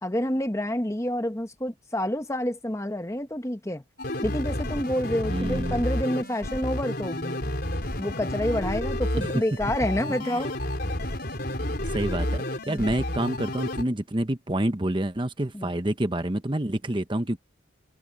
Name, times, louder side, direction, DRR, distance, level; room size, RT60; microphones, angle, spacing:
voice 1, 0.0-3.8 4.2-7.5 8.0-10.5 12.7-12.9 15.5-15.7, left 1 dB, 15° left, 1.0 m, -28 dB
sound 1, 4.0-13.8, left 1 dB, 50° left, 4.6 m, -30 dB
voice 2, 5.3-5.8 9.2-9.3 10.2-10.5 11.9-17.4, right 1 dB, 25° right, 1.0 m, -28 dB
head